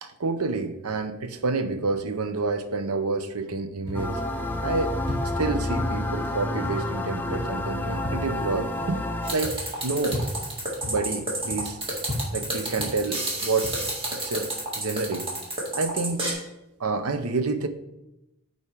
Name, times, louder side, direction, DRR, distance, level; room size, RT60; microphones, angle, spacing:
voice 1, 0.0-4.2 4.6-5.0 5.2-9.0 9.3-10.3 10.9-11.8 12.3-13.8 14.1-14.5 14.8-15.3 15.7-16.3 16.8-17.7, right 3 dB, 80° right, 9 dB, 0.7 m, -28 dB
sound 1, 3.8-13.8, left 1 dB, 50° right, 1.9 m, -37 dB
sound 2, 3.9-9.3, left 1 dB, 10° left, 0.5 m, -29 dB
sound 3, 9.2-16.3, right 2 dB, 25° right, 1.7 m, -30 dB
8.4 x 4.4 x 4.6 m, 0.91 s
head